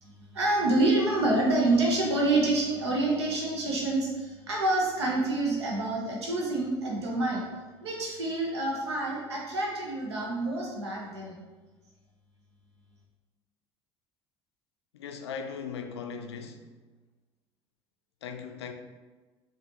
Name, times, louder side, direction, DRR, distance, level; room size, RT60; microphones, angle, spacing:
voice 1, 0.0-7.5 7.8-11.4, right 2 dB, 75° right, 0.7 m, -27 dB
voice 2, 14.9-16.7 18.2-18.7, left 6 dB, 75° left, 0.4 m, -38 dB
5.0 x 2.5 x 2.8 m
figure-of-eight pair, 60°, 14 cm